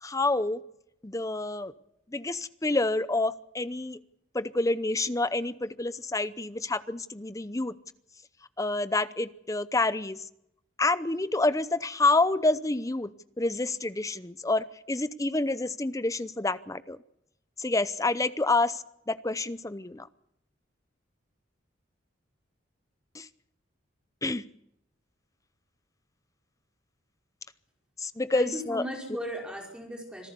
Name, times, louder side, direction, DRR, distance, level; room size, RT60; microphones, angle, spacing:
voice 1, 0.0-0.6 1.0-1.7 2.1-4.0 4.3-7.8 8.6-10.3 10.8-17.0 17.6-20.1 23.1-23.3 24.2-24.4 28.0-28.8, left 2 dB, 15° left, 15 dB, 0.7 m, -28 dB
voice 2, 28.3-30.3, equal, 5° right, 0 dB, 5.1 m, -37 dB
26.0 x 15.0 x 6.9 m, 0.78 s
head